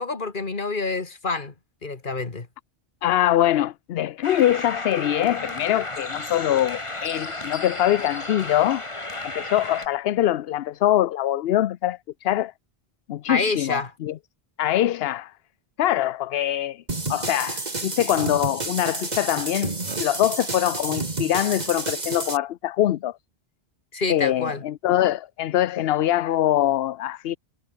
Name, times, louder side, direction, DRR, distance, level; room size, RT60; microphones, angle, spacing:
voice 1, 0.0-1.5 1.8-2.5 13.3-13.9 23.9-24.6, left 3 dB, 50° left, 2.2 m, -27 dB
voice 2, 3.0-8.8 9.2-12.5 13.1-14.2 14.6-15.3 15.8-16.8 17.1-19.7 20.0-23.2 24.1-27.4, left 12 dB, 75° left, 0.8 m, -23 dB
sound 1, 4.2-9.9, left 2 dB, 30° left, 2.2 m, -33 dB
sound 2, 16.9-22.4, right 3 dB, 40° right, 2.4 m, -30 dB
omnidirectional pair, 1.1 m